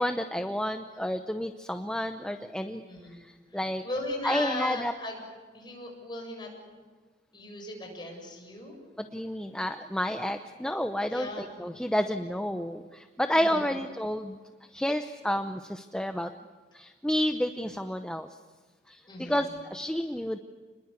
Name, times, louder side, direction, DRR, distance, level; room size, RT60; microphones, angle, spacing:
voice 1, 0.0-2.8 3.1-3.8 4.2-4.9 9.0-14.4 14.7-16.3 16.7-18.3 18.9-20.4, equal, 5° left, 7 dB, 0.7 m, -30 dB
voice 2, 2.9-3.2 3.8-5.2 5.5-6.5 7.3-8.7 11.1-11.5 13.3-13.8 19.1-19.4, left 2 dB, 25° left, 1 dB, 7.4 m, -37 dB
29.0 x 21.0 x 8.2 m, 1.4 s
head